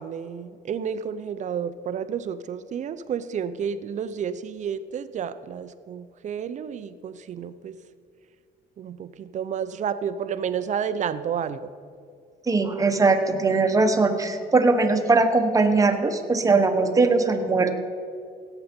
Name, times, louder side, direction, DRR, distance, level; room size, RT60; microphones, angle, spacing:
voice 1, 0.0-7.8 8.8-11.7, right 7 dB, 45° right, 12 dB, 0.6 m, -31 dB
voice 2, 12.5-17.7, right 3 dB, 20° right, 6 dB, 1.1 m, -20 dB
17.5 x 8.0 x 4.4 m, 2.3 s
cardioid pair, 110°, 17 cm